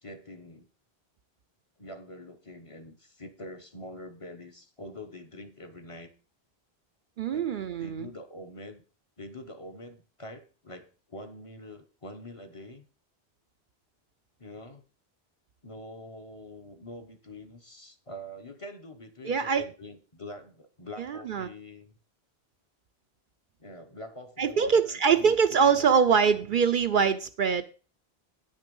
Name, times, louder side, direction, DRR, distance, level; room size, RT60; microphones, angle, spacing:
voice 1, 0.0-0.7 1.8-6.1 7.3-7.5 7.8-8.8 9.2-12.8 14.4-14.8 15.6-21.9 23.6-26.0 26.5-26.6, left 1 dB, 35° left, 5 dB, 1.0 m, -45 dB
voice 2, 7.2-8.1 19.2-19.6 21.0-21.5 24.4-27.6, right 6 dB, 60° right, 9 dB, 0.7 m, -24 dB
9.3 x 6.4 x 5.3 m, 0.37 s
omnidirectional pair, 1.1 m